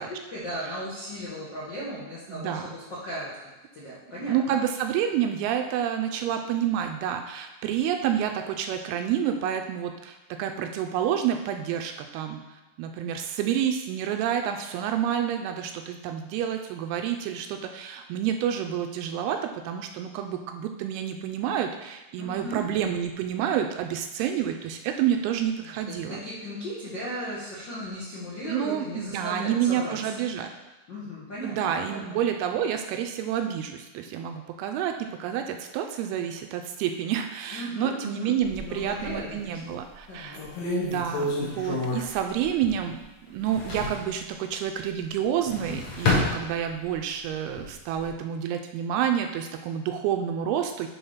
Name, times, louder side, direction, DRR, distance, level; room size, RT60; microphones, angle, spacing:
voice 1, 0.0-3.3 3.7-4.6 22.2-22.6 25.9-30.0 30.9-32.2 37.5-38.3 38.6-39.6 40.1-40.4, equal, 85° left, -8 dB, 1.0 m, -36 dB
voice 2, 2.3-2.8 4.3-26.2 28.5-30.5 31.4-40.4 40.8-43.0 43.3-50.9, right 9 dB, 80° right, 5 dB, 2.3 m, -29 dB
sound 1, 38.4-39.4 39.9-40.0 40.3-43.0 43.3-44.1 45.2-47.0 47.4-48.1, left 2 dB, 60° left, 2.0 m, -29 dB
8.6 x 3.7 x 5.5 m, 1.1 s
omnidirectional pair, 4.7 m